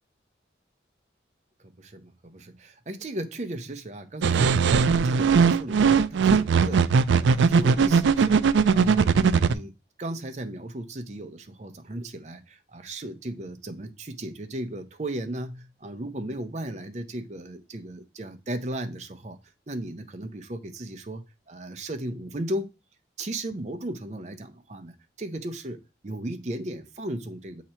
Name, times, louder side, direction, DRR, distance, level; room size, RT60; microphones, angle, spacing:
voice 1, 1.6-9.7 10.0-19.4 19.7-22.7 23.2-27.6, right 1 dB, 40° right, 0.6 m, -36 dB
sound 1, 4.2-9.5, right 5 dB, 85° right, 0.4 m, -19 dB
7.7 x 2.9 x 4.3 m
head